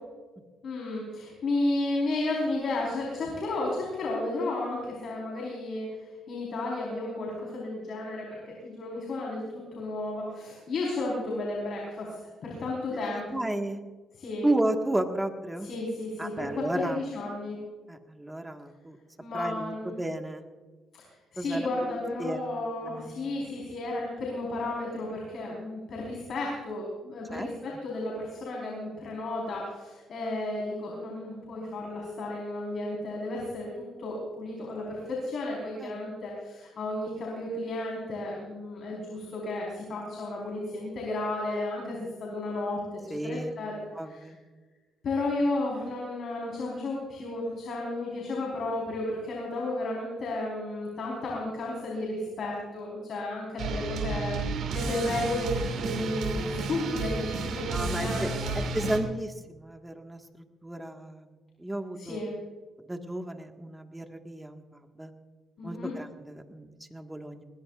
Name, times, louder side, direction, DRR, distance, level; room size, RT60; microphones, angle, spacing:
voice 1, 0.6-9.4 9.7-13.5 14.2-14.5 15.6-17.6 19.2-19.9 20.9-21.1 21.3-43.7 44.1-44.3 45.0-58.6 62.0-62.4 65.6-65.9, left 2 dB, 60° left, -3 dB, 4.5 m, -33 dB
voice 2, 12.9-13.8 14.4-15.7 16.2-17.0 17.9-19.0 19.3-20.4 21.4-21.7 22.2-23.3 27.3-27.8 35.8-36.0 43.1-43.5 43.9-44.4 57.7-58.3 58.7-60.2 60.6-62.2 62.9-65.1 65.6-67.4, right 1 dB, 10° right, 4 dB, 1.7 m, -33 dB
sound 1, 53.6-59.0, right 4 dB, 75° right, 2.6 m, -32 dB
20.5 x 20.0 x 2.5 m, 1.3 s
cardioid pair, 90°, 0 cm